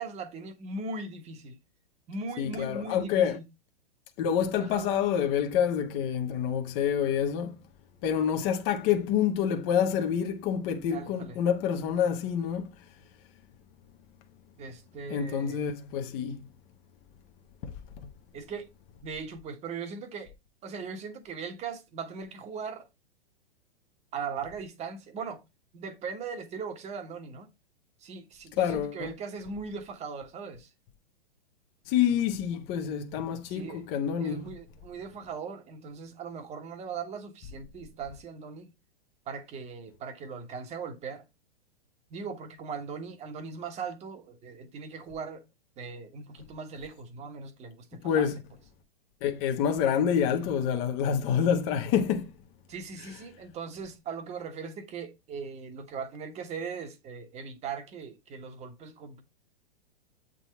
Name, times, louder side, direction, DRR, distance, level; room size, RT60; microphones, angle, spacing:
voice 1, 0.0-1.6 2.1-3.5 4.6-4.9 10.9-11.4 14.6-15.6 18.3-18.7 19.0-20.3 20.6-22.9 24.1-25.4 25.7-27.5 28.0-30.7 33.5-33.8 34.2-38.7 39.3-41.2 42.1-45.4 45.8-48.3 52.7-59.2, right 5 dB, 20° right, 1.3 m, -39 dB
voice 2, 2.4-3.4 4.2-7.6 8.0-12.7 15.1-16.4 28.6-29.1 31.9-34.5 48.0-48.4 49.2-52.3, left 8 dB, 35° left, 1.1 m, -27 dB
8.1 x 3.9 x 4.4 m
figure-of-eight pair, 110°, 30 cm